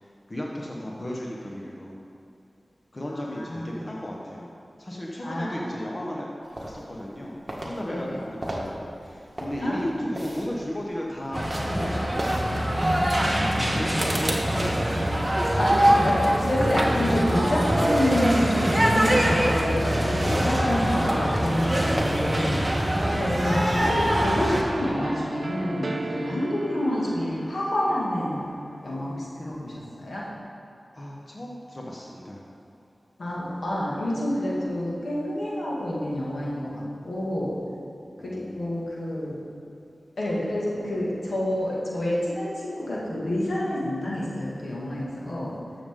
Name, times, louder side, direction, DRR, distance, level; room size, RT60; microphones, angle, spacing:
voice 1, 0.0-2.0 2.9-4.5 4.8-6.3 6.6-12.3 13.7-15.3 30.9-32.4 38.2-38.6, equal, 40° left, -3 dB, 1.2 m, -35 dB
voice 2, 3.3-3.8 5.2-5.8 7.8-8.2 9.6-9.9 13.1-13.7 15.6-22.6 23.2-28.5 28.8-30.2 33.2-37.6 38.2-39.4 40.2-45.6, left 1 dB, 80° left, -6 dB, 2.1 m, -28 dB
sound 1, 6.6-7.2 7.5-13.4 13.9-17.8 19.5-23.8, right 1 dB, 30° right, 1.6 m, -37 dB
sound 2, 11.3-24.6, equal, 10° right, 1.4 m, -24 dB
sound 3, 14.0-29.3, right 2 dB, 60° right, 0.4 m, -36 dB
12.5 x 7.1 x 3.8 m, 2.7 s
wide cardioid pair, 55°, 0 cm